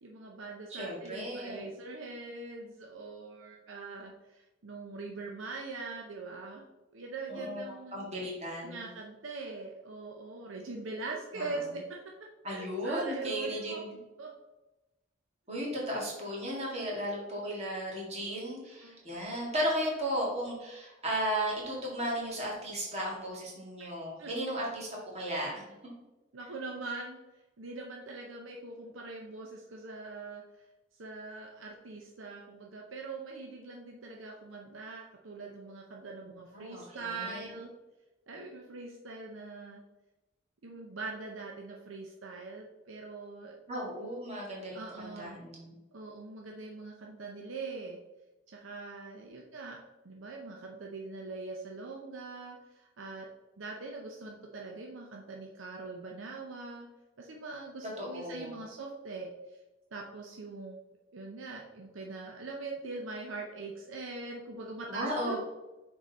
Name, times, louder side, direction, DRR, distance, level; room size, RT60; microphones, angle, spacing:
voice 1, 0.0-6.7 6.9-8.1 8.6-11.8 12.5-13.8 14.2-14.3 18.8-19.0 24.2-24.3 26.3-27.2 27.6-30.4 31.0-37.7 38.3-39.8 40.6-43.6 44.7-45.4 45.9-48.0 48.5-49.8 50.0-52.6 53.0-53.3 53.6-56.9 57.2-59.3 59.9-60.8 61.1-65.4, right 3 dB, 70° right, 0 dB, 0.7 m, -42 dB
voice 2, 0.7-1.7 7.3-8.9 11.4-11.5 12.4-13.9 15.5-25.6 36.5-37.5 43.7-45.8 58.0-58.6 64.9-65.4, equal, 30° right, -4 dB, 2.1 m, -35 dB
6.3 x 3.9 x 4.1 m, 1.0 s
head